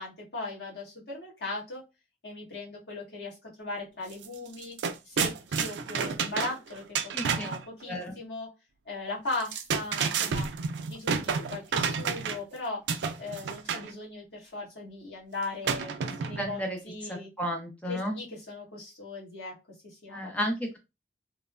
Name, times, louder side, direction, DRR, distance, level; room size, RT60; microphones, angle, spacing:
voice 1, 0.0-1.8 2.2-4.8 5.0-8.5 8.8-10.5 10.9-12.8 13.2-17.3 17.9-19.5 19.8-20.3, left 2 dB, 75° left, -4 dB, 1.2 m, -38 dB
sound 1, 4.1-4.3 4.5-7.6 9.3-12.5 12.9-13.9 15.6-16.6, right 6 dB, 85° right, 0.3 m, -30 dB
voice 2, 7.1-7.5 7.9-8.1 16.1-18.2 20.1-20.8, equal, 10° left, 1 dB, 0.6 m, -33 dB
3.1 x 2.0 x 2.4 m, 0.25 s
head